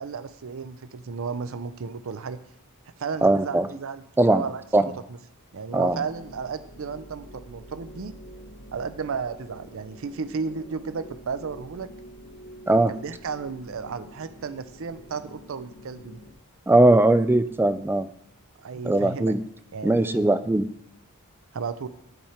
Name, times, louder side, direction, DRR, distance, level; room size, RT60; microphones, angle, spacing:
voice 1, 0.0-2.4 3.0-5.2 5.5-8.1 8.7-11.9 12.9-16.2 18.6-19.3 19.7-20.3 21.5-21.9, right 5 dB, 65° right, 12 dB, 0.5 m, -34 dB
voice 2, 3.2-3.7 4.2-4.4 4.7-4.8 5.7-6.0 12.7-12.9 16.7-18.1 18.8-19.4 19.8-20.7, right 2 dB, 10° right, 12 dB, 0.3 m, -19 dB
sound 1, 5.7-16.3, equal, 75° left, 1.6 m, -47 dB
10.0 x 5.0 x 4.4 m, 0.74 s
head